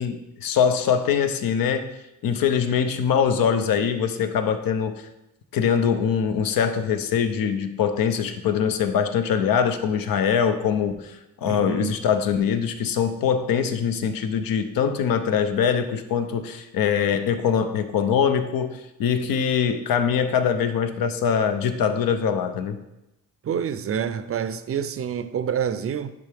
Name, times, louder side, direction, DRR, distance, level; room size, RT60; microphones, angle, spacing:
voice 1, 0.0-1.9 2.2-4.9 5.5-22.8, left 7 dB, 85° left, 0.7 m, -23 dB
voice 2, 11.5-12.0 23.4-26.1, right 8 dB, 45° right, 0.4 m, -27 dB
10.0 x 3.6 x 3.4 m
cardioid pair, 100°, 33 cm